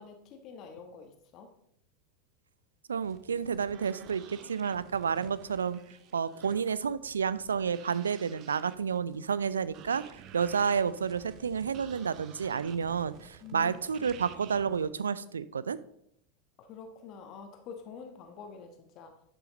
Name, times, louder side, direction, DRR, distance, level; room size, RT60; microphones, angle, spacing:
voice 1, 0.0-1.5 13.4-14.1 16.6-19.2, left 6 dB, 45° left, 5 dB, 1.4 m, -47 dB
voice 2, 2.9-5.8 6.1-10.0 10.3-15.8, right 6 dB, 80° right, 17 dB, 0.4 m, -30 dB
sound 1, 3.0-14.9, right 10 dB, 45° right, 0.7 m, -52 dB
11.5 x 6.2 x 3.9 m, 0.72 s
figure-of-eight pair, 85°, 0 cm